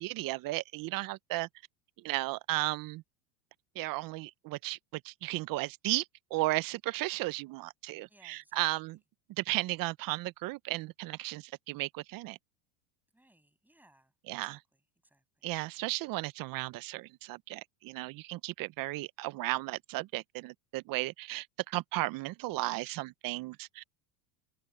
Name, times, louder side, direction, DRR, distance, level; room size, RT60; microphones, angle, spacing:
voice 1, 0.0-1.5 2.0-3.0 3.8-6.1 6.3-9.0 9.4-12.4 14.3-14.6 15.4-23.8, right 19 dB, 45° right, 0.7 m, -35 dB
voice 2, 8.1-8.7 13.1-15.2, right 1 dB, 5° right, 7.7 m, -65 dB
supercardioid pair, 120°, 48 cm